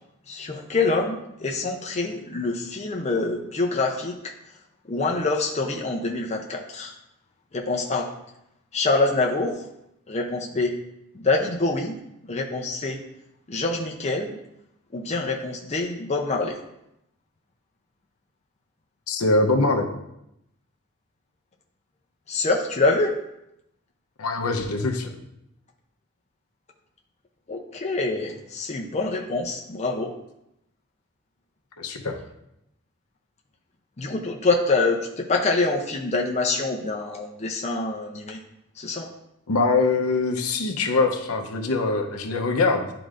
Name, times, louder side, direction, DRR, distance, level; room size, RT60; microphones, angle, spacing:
voice 1, 0.3-4.3 4.9-6.9 7.5-8.1 8.7-9.6 10.1-10.7 11.1-12.0 12.3-13.0 13.5-14.4 14.9-16.6 22.3-23.1 27.5-30.1 34.0-38.4 38.8-39.1, left 3 dB, 30° left, 1 dB, 0.6 m, -25 dB
voice 2, 19.1-19.9 24.2-25.2 31.8-32.2 39.5-42.9, left 3 dB, 75° left, 4 dB, 0.8 m, -23 dB
11.0 x 3.8 x 2.5 m, 0.82 s
head